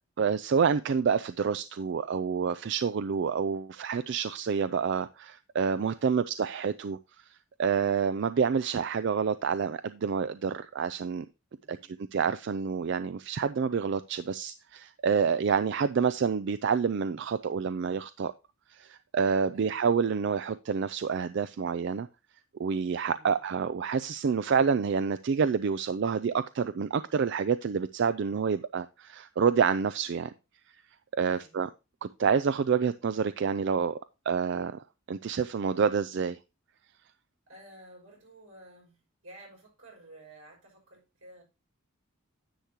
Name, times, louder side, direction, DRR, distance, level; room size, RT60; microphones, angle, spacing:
voice 1, 0.2-7.0 7.6-11.3 11.7-18.3 18.7-22.1 22.6-30.3 31.1-31.7 32.0-34.0 34.3-36.4, right 6 dB, 55° right, 0.4 m, -28 dB
voice 2, 5.9-6.3 11.6-12.0 19.5-19.8 23.1-23.4 31.2-31.6 37.5-41.4, right 1 dB, 80° right, 5.7 m, -53 dB
10.0 x 8.0 x 2.9 m
head